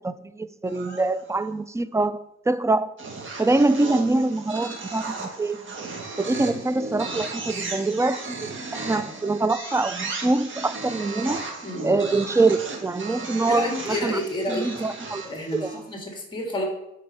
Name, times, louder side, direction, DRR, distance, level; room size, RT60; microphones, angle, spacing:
voice 1, 0.0-2.9 3.4-5.7 6.2-11.4 11.8-14.2 14.5-15.2 15.6-15.7, right 2 dB, 10° right, 0.3 m, -24 dB
sound 1, 0.7-1.4 3.0-15.9, right 3 dB, 40° right, 1.8 m, -35 dB
voice 2, 11.6-12.0 13.5-14.7 15.2-16.7, left 1 dB, 15° left, 2.1 m, -29 dB
8.6 x 4.2 x 5.5 m
cardioid pair, 90°, 30 cm